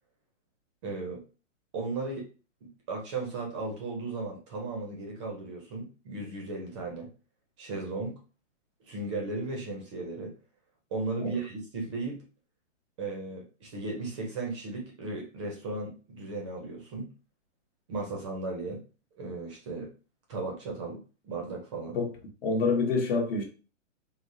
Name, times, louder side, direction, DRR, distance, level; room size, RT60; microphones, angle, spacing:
voice 1, 0.8-1.2 1.7-2.3 2.6-7.1 7.6-8.2 8.8-10.3 10.9-12.2 13.0-17.1 17.9-18.8 19.2-19.9 20.3-22.0, right 3 dB, 25° right, 0.5 m, -36 dB
voice 2, 22.4-23.4, left 4 dB, 50° left, 1.0 m, -26 dB
3.4 x 2.0 x 2.6 m
hypercardioid pair, 145°, 37 cm